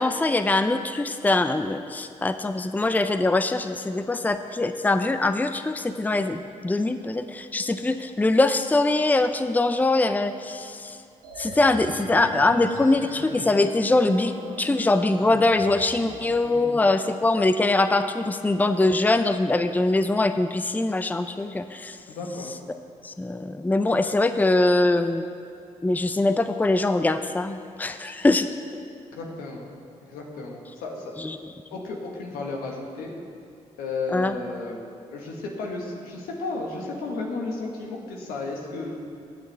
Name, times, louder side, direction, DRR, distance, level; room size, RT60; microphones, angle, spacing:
voice 1, 0.0-11.0 11.4-14.3 14.6-22.0 23.0-25.2 25.8-28.5 31.2-31.4 34.1-34.4, left 2 dB, 10° left, 10 dB, 0.5 m, -23 dB
sound 1, 11.2-16.2, right 3 dB, 85° right, 1.3 m, -39 dB
voice 2, 16.4-16.7 22.1-22.5 29.1-29.7 30.0-31.1 31.7-33.1 33.8-34.8 35.1-39.0, left 3 dB, 85° left, 0 dB, 1.3 m, -33 dB
18.5 x 6.3 x 3.4 m, 2.4 s
supercardioid pair, 45°, 15 cm